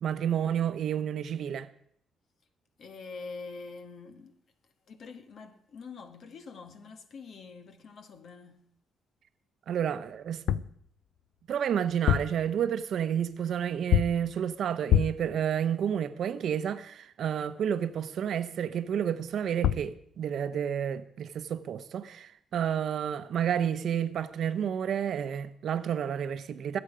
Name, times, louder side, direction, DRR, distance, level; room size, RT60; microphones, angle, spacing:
voice 1, 0.0-1.7 9.7-10.6 11.5-26.8, right 9 dB, 65° right, 0.9 m, -30 dB
voice 2, 2.8-4.3 4.9-8.6, left 4 dB, 60° left, 1.6 m, -45 dB
sound 1, 10.3-10.8 11.9-12.5 13.9-14.3 14.9-15.3 19.3-19.4 19.6-20.0, left 11 dB, 75° left, 0.5 m, -26 dB
22.5 x 8.0 x 5.1 m
cardioid pair, 90°, 0 cm